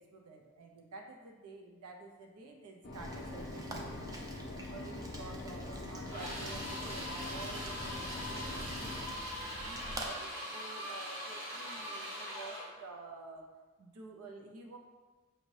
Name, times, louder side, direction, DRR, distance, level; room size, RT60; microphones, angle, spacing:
voice 1, 0.0-4.3 4.7-9.2 9.6-13.5 13.8-14.8, right 3 dB, 85° right, 2 dB, 0.5 m, -50 dB
sound 1, 2.8-9.1, left 2 dB, 45° left, 0.5 m, -44 dB
Rain, 2.9-10.1, equal, 15° right, 0.4 m, -46 dB
sound 2, 6.1-12.8, equal, 55° right, 1.2 m, -42 dB
6.3 x 2.6 x 3.2 m, 1.3 s
head